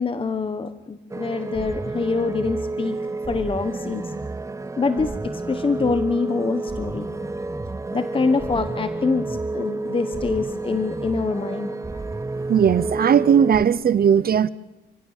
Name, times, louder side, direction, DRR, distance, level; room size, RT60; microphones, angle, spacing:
voice 1, 0.0-3.0 3.3-4.1 4.8-7.3 7.9-12.0, left 4 dB, 25° left, 1.1 m, -25 dB
sound 1, 1.1-13.6, right 3 dB, 15° right, 0.8 m, -30 dB
voice 2, 12.5-14.5, right 8 dB, 50° right, 0.8 m, -17 dB
29.0 x 16.0 x 7.4 m
cardioid pair, 90°, 20 cm